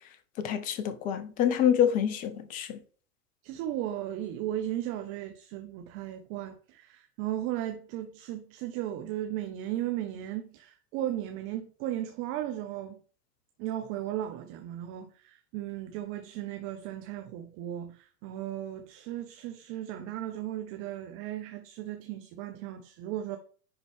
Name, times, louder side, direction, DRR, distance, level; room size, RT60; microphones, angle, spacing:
voice 1, 0.4-2.8, left 9 dB, 20° left, 0.5 m, -27 dB
voice 2, 3.4-13.0 13.6-23.4, right 12 dB, 30° right, 0.8 m, -36 dB
10.0 x 4.0 x 3.5 m
figure-of-eight pair, 100°, 48 cm